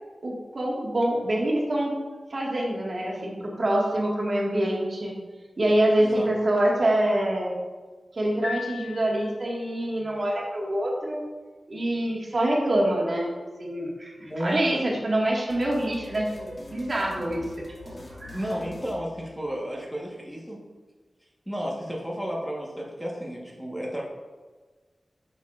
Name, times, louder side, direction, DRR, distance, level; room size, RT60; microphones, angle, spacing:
voice 1, 0.2-1.9 2.3-5.1 5.6-7.5 8.1-11.2 11.7-13.3 13.6-17.4 17.8-18.4, right 1 dB, 50° right, -3 dB, 1.7 m, -25 dB
Piano, 8.4-9.7, left 6 dB, 65° left, 0.6 m, -38 dB
voice 2, 14.2-14.8 18.3-20.6 21.5-24.0, equal, ahead, -3 dB, 1.3 m, -32 dB
sound 1, 15.5-19.8, left 1 dB, 50° left, 1.5 m, -42 dB
8.8 x 6.5 x 2.5 m, 1.3 s
wide cardioid pair, 70°, 0 cm